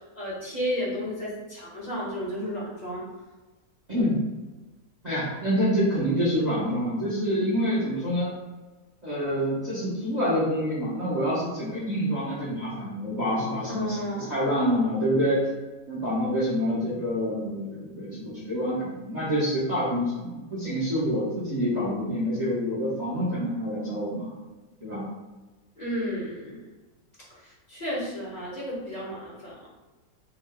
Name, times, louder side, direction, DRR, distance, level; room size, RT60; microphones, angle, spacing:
voice 1, 0.1-3.0 13.6-14.5 25.8-26.6 27.7-29.7, equal, 25° left, -6 dB, 1.5 m, -32 dB
voice 2, 3.9-4.3 5.0-8.3 9.0-15.4 15.9-24.3 24.8-25.0, equal, 30° right, -8 dB, 1.1 m, -27 dB
4.7 x 3.7 x 2.2 m, 1.2 s
omnidirectional pair, 1.7 m